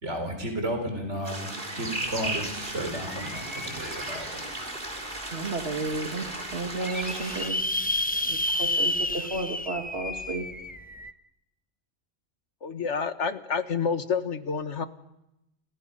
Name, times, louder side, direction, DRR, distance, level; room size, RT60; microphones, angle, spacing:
voice 1, 0.0-4.5, right 1 dB, 85° right, 4 dB, 4.4 m, -33 dB
sound 1, 1.2-7.5, right 1 dB, 45° right, 4.2 m, -35 dB
sound 2, 2.0-2.1 2.4-4.5 5.1-5.2 5.6-5.7 5.9-6.0 6.5-11.1, left 1 dB, 10° left, 0.7 m, -31 dB
voice 2, 5.3-7.6 8.3-10.4, right 3 dB, 65° right, 3 dB, 2.5 m, -33 dB
voice 3, 12.6-14.9, left 6 dB, 90° left, 10 dB, 1.7 m, -28 dB
29.5 x 29.0 x 5.4 m, 0.88 s
omnidirectional pair, 1.2 m